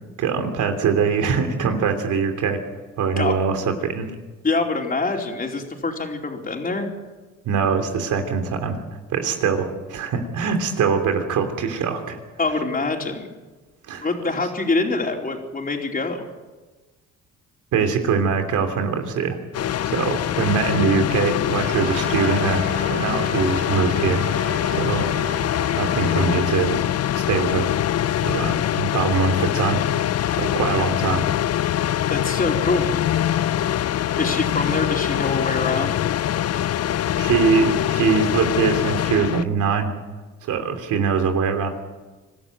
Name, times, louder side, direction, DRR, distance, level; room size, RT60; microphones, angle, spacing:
voice 1, 0.2-2.6 3.0-4.1 7.4-8.8 9.1-12.2 13.9-14.1 17.7-22.6 22.9-25.1 25.8-26.8 27.3-31.2 34.5-34.7 37.2-39.9 40.5-41.7, right 6 dB, 85° right, 6 dB, 3.2 m, -23 dB
voice 2, 4.4-6.9 12.4-13.3 14.0-16.2 32.1-33.0 34.2-36.0, left 3 dB, 30° left, 1 dB, 4.4 m, -25 dB
sound 1, 19.5-39.4, left 11 dB, 55° left, 0.6 m, -23 dB
Trumpet, 21.7-26.6, right 2 dB, 30° right, 6.9 m, -34 dB
25.0 x 13.0 x 9.2 m, 1.2 s
cardioid pair, 90°, 30 cm